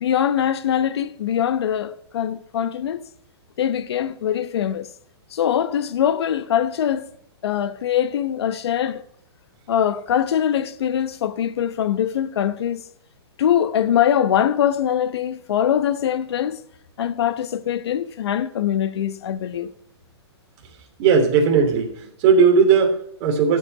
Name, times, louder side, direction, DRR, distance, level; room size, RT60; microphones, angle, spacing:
voice 1, 0.0-3.0 3.6-4.9 5.3-7.1 7.4-9.0 9.7-12.8 13.4-16.6 17.0-19.7, left 9 dB, 70° left, 1.1 m, -22 dB
voice 2, 21.0-23.6, right 5 dB, 35° right, 3.1 m, -17 dB
14.0 x 8.0 x 5.9 m
hypercardioid pair, 150°, 14 cm